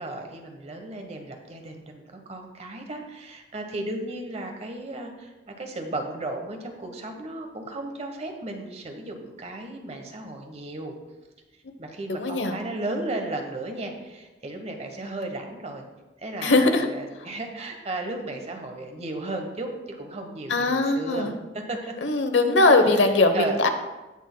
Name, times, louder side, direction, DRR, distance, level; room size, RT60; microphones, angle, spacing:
voice 1, 0.0-10.9 11.8-15.8 16.2-21.9 22.9-23.6, right 2 dB, 35° right, 4 dB, 1.1 m, -35 dB
voice 2, 12.2-12.6 16.4-16.9 20.5-21.3 22.0-23.7, left 2 dB, 85° left, 7 dB, 0.9 m, -20 dB
16.5 x 6.2 x 2.2 m, 1.1 s
head